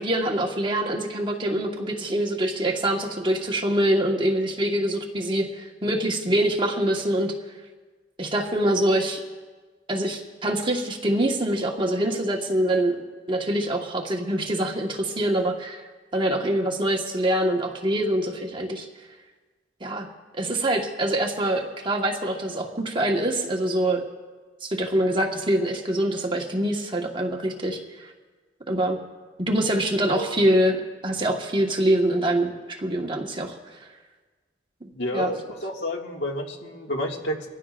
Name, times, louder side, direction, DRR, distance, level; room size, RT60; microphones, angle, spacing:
voice 1, 0.0-7.3 8.2-9.2 9.9-13.0 13.3-15.8 16.1-18.9 19.8-20.1 20.3-24.0 24.6-28.1 28.7-29.0 29.4-33.8 34.8-35.3, right 1 dB, 25° right, 1 dB, 1.4 m, -25 dB
voice 2, 34.9-37.5, equal, 70° left, 1 dB, 1.9 m, -30 dB
24.5 x 15.5 x 2.5 m, 1.4 s
head